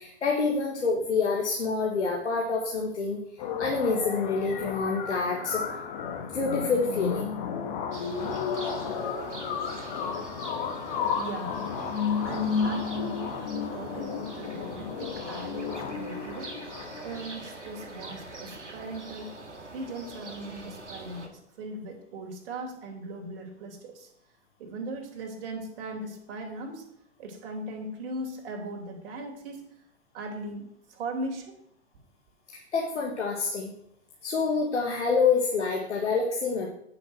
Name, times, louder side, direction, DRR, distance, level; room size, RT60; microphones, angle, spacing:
voice 1, 0.0-3.2 3.6-5.6 6.3-7.3 32.5-33.7 34.2-36.7, left 4 dB, 75° left, 0 dB, 1.7 m, -27 dB
sound 1, 3.4-17.4, left 6 dB, 45° left, 1.5 m, -32 dB
sound 2, 7.9-21.3, right 2 dB, 90° right, 1.8 m, -43 dB
voice 2, 11.2-11.6 12.2-16.7 17.0-19.4 19.7-24.1 24.6-26.9 27.2-29.6 30.1-31.6, right 1 dB, 55° right, 2 dB, 2.8 m, -38 dB
9.6 x 6.0 x 6.2 m, 0.75 s
figure-of-eight pair, 100°, 35 cm